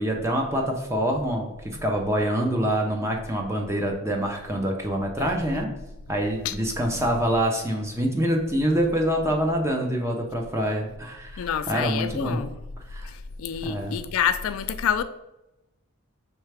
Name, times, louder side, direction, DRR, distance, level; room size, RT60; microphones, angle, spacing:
voice 1, 0.0-5.7 6.1-12.4 12.9-13.1 13.6-14.0, equal, 10° right, 0.6 m, -26 dB
voice 2, 5.2-5.6 6.4-6.6 11.4-12.5 13.0-15.0, left 8 dB, 65° left, 0.3 m, -28 dB
4.7 x 3.2 x 3.4 m
head